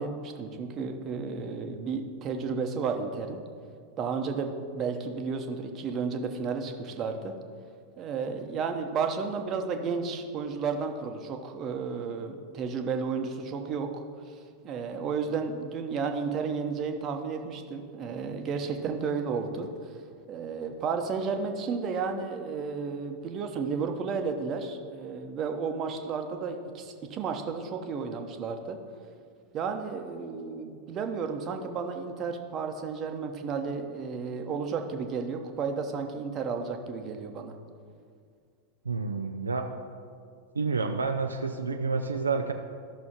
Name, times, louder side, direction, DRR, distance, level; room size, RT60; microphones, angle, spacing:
voice 1, 0.0-3.4 4.0-7.3 8.0-20.0 20.3-28.8 29.5-37.5, right 5 dB, 30° right, 5 dB, 0.9 m, -32 dB
voice 2, 38.8-39.7 40.5-42.5, right 4 dB, 75° right, 5 dB, 0.4 m, -29 dB
14.5 x 6.1 x 3.0 m, 2.2 s
figure-of-eight pair, 90°, 0 cm